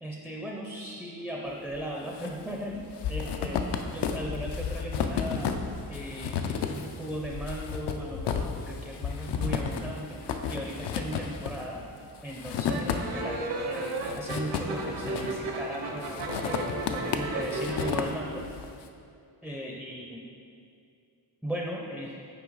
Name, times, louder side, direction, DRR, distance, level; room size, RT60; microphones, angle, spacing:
voice 1, 0.0-5.6 5.9-10.2 10.5-11.8 12.2-18.4 19.4-20.3 21.4-22.2, right 1 dB, ahead, -1 dB, 0.4 m, -37 dB
sound 1, 1.7-2.3 2.6-13.4 13.7-15.6 16.0-18.7, left 6 dB, 75° left, 0.5 m, -33 dB
sound 2, 12.7-17.9, right 2 dB, 70° right, 0.7 m, -34 dB
5.9 x 4.5 x 3.9 m, 2.4 s
wide cardioid pair, 120°, 41 cm